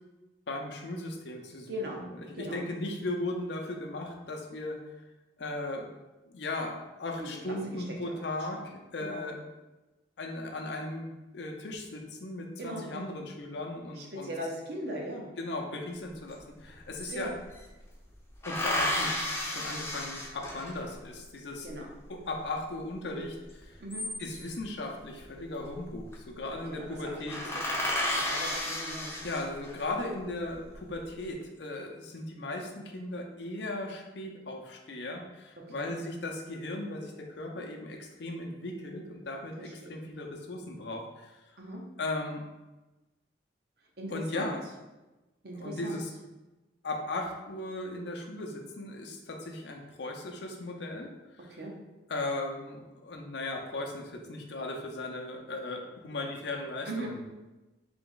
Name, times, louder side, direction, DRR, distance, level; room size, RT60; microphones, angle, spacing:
voice 1, 0.5-4.8 5.4-5.9 6.3-9.4 10.2-14.3 15.4-17.3 18.4-19.1 19.5-21.7 22.1-23.8 24.2-27.4 29.2-41.4 42.0-42.5 44.1-44.6 45.5-46.1 46.8-51.1 51.4-51.6 52.1-57.2, left 2 dB, 70° left, 2 dB, 0.6 m, -37 dB
voice 2, 1.7-2.0 2.3-2.6 7.2-8.1 9.0-9.2 12.6-13.1 14.0-15.3 17.1-17.3 21.6-21.9 23.8-24.1 26.7-29.1 35.7-35.9 39.8-40.1 41.6-41.8 44.0-44.6 45.4-46.0 51.5-51.7 56.9-57.2, right 1 dB, 60° right, -1 dB, 0.8 m, -39 dB
sound 1, 16.3-16.4 16.6-17.7 18.4-21.0 23.6-24.6 25.8-26.1 26.5-26.6 26.9-27.0 27.3-29.8 30.4-31.1, left 1 dB, 15° left, 0.5 m, -33 dB
3.4 x 3.0 x 3.8 m, 1.1 s
head